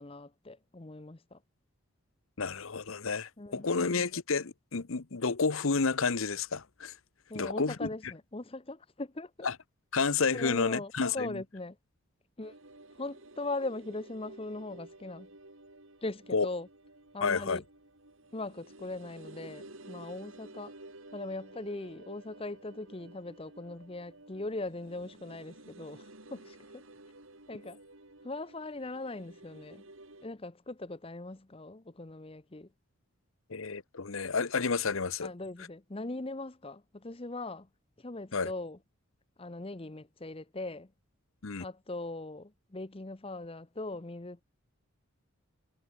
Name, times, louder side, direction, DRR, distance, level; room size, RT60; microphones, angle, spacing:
voice 1, 0.0-1.4 3.4-4.1 7.3-9.5 10.3-11.8 12.4-12.5 13.0-15.3 16.0-16.7 17.1-17.6 18.3-20.7 21.1-26.8 27.5-27.8 28.2-29.8 30.2-32.7 35.2-37.7 38.0-38.8 39.4-40.9 41.6-44.4, left 2 dB, 25° left, 0.7 m, -40 dB
voice 2, 2.4-6.9 7.3-7.9 9.4-9.5 9.9-11.4 16.3-16.5 17.2-17.6 33.5-35.3 38.3-38.5 41.4-41.6, left 4 dB, 70° left, 0.9 m, -30 dB
sound 1, 12.4-30.3, right 2 dB, 65° right, 3.7 m, -53 dB
head